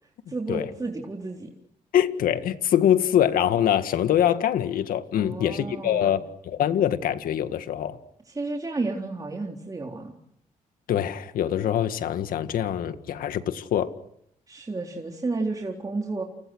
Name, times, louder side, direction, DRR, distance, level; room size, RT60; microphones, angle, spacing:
voice 1, 0.3-1.5 5.2-6.2 8.3-10.2 14.5-16.2, right 3 dB, 25° right, 3.9 m, -32 dB
voice 2, 1.9-8.0 10.9-13.9, left 10 dB, 80° left, 1.9 m, -24 dB
29.5 x 28.0 x 6.4 m
cardioid pair, 80°, 14 cm